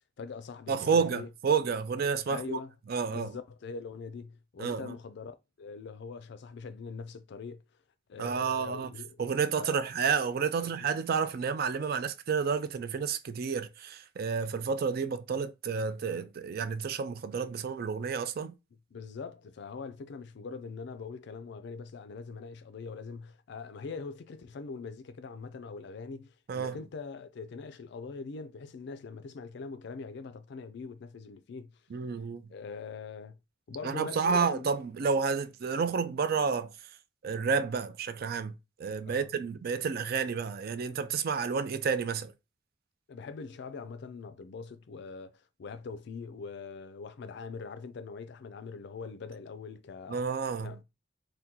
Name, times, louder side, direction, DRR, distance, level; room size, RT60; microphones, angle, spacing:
voice 1, 0.2-1.3 2.3-2.7 3.1-7.6 8.1-9.2 9.6-9.8 10.6-10.9 18.9-31.7 32.5-33.4 33.7-34.7 39.0-39.3 43.1-50.2 50.6-50.8, left 4 dB, 60° left, 0.4 m, -42 dB
voice 2, 0.7-2.6 2.9-3.3 4.6-4.9 8.2-8.9 9.2-18.5 26.5-26.8 31.9-32.4 33.8-36.7 37.2-38.5 38.8-42.3 50.1-50.7, right 5 dB, 55° right, 0.4 m, -30 dB
2.8 x 2.2 x 3.6 m
head